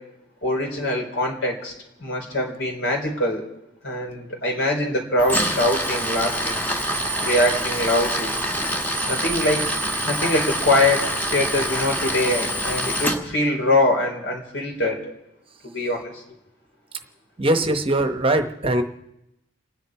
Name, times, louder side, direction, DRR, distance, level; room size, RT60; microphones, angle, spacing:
voice 1, 0.4-1.7 2.0-3.4 3.8-6.6 7.2-8.3 9.1-9.7 10.0-11.1 11.3-15.1 15.7-16.1 17.6-17.7, left 1 dB, 70° left, 1 dB, 3.7 m, -23 dB
Tools, 5.2-13.2, equal, 10° left, 1.4 m, -25 dB
voice 2, 17.4-18.8, right 1 dB, 30° right, 7 dB, 0.9 m, -21 dB
29.5 x 10.0 x 4.7 m, 0.88 s
head